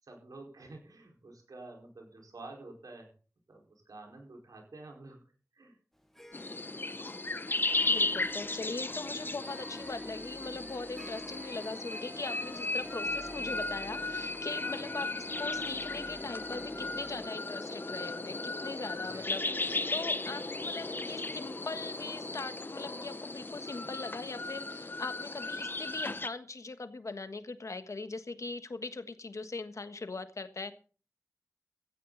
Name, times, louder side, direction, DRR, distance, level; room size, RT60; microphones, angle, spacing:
voice 1, 0.0-3.1 3.5-5.8 8.9-9.3 14.6-14.9 19.0-19.5, right 2 dB, 80° right, 1 dB, 4.8 m, -50 dB
Harp, 6.0-19.9, equal, 5° left, 2.3 m, -50 dB
sound 1, 6.3-26.3, left 2 dB, 35° left, 0.9 m, -36 dB
sound 2, 7.7-17.2, right 1 dB, 20° right, 1.7 m, -55 dB
voice 2, 7.9-30.7, left 3 dB, 60° left, 9 dB, 1.4 m, -41 dB
16.5 x 14.0 x 4.1 m, 0.40 s
wide cardioid pair, 85°, 6 cm